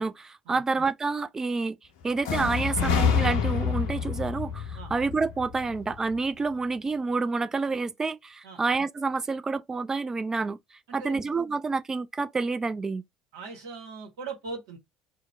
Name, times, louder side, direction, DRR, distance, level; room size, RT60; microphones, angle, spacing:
voice 1, 0.0-1.8 2.0-10.6 10.9-13.0, right 4 dB, 20° right, 0.4 m, -28 dB
sound 1, 2.2-6.1, left 6 dB, 60° left, 0.6 m, -27 dB
voice 2, 10.9-11.3 13.3-14.8, right 4 dB, 65° right, 1.1 m, -40 dB
2.8 x 2.1 x 3.7 m
figure-of-eight pair, 60°, 3 cm